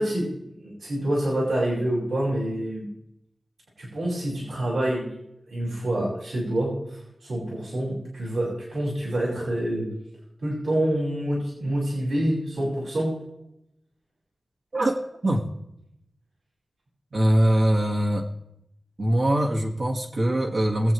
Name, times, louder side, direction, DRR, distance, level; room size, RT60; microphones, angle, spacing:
voice 1, 0.0-2.9 3.8-5.1 5.5-9.9 10.4-13.1, right 1 dB, 80° right, -6 dB, 5.5 m, -27 dB
voice 2, 14.7-15.5 17.1-18.3 19.0-20.9, right 1 dB, 55° right, -2 dB, 1.7 m, -22 dB
22.0 x 8.3 x 3.1 m, 0.80 s
wide cardioid pair, 65°, 0 cm